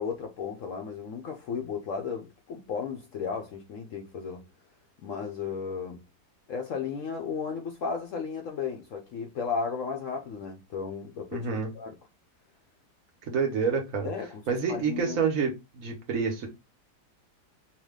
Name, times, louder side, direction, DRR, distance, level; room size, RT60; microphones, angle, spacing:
voice 1, 0.0-4.5 5.0-6.0 6.5-11.5 11.7-11.9 14.0-15.2, left 6 dB, 65° left, 0.8 m, -34 dB
voice 2, 11.3-11.7 13.2-14.1 14.5-16.5, right 5 dB, 60° right, 1.2 m, -28 dB
4.7 x 2.2 x 3.5 m
omnidirectional pair, 1.8 m